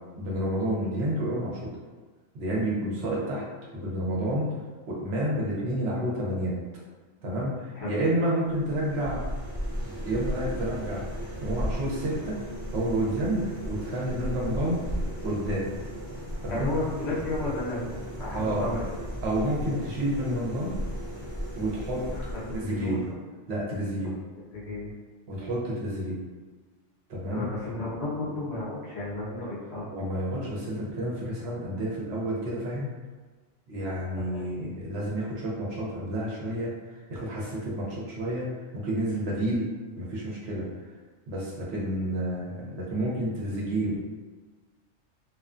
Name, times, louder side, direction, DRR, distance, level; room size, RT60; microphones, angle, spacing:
voice 1, 0.1-1.7 2.3-3.4 3.7-4.5 4.9-6.5 7.2-9.3 10.0-12.4 12.7-14.8 15.2-15.7 16.4-16.7 18.3-18.7 19.2-20.8 21.6-22.0 22.5-23.0 23.5-24.1 25.3-26.2 27.1-27.5 29.9-32.9 33.7-40.7 41.3-44.0, right 1 dB, 60° right, -5 dB, 0.9 m, -30 dB
sound 1, 8.5-23.1, equal, 35° right, 0.6 m, -35 dB
voice 2, 16.5-18.8 22.5-23.2 24.5-24.9 27.3-29.9 34.2-34.5, left 2 dB, 60° left, -8 dB, 1.1 m, -33 dB
2.4 x 2.3 x 2.4 m, 1.3 s
omnidirectional pair, 1.3 m